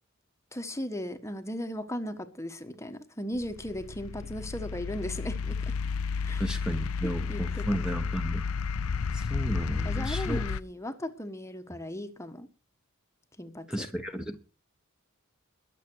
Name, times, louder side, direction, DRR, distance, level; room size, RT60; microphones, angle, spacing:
voice 1, 0.5-5.5 6.2-6.5 7.3-7.8 9.8-12.5 13.4-13.9, left 1 dB, 15° left, 1.3 m, -37 dB
sound 1, 3.3-10.6, left 5 dB, 85° left, 0.6 m, -32 dB
voice 2, 6.4-8.5 9.1-10.4 13.7-14.4, equal, 5° right, 1.3 m, -33 dB
22.0 x 7.5 x 4.7 m
head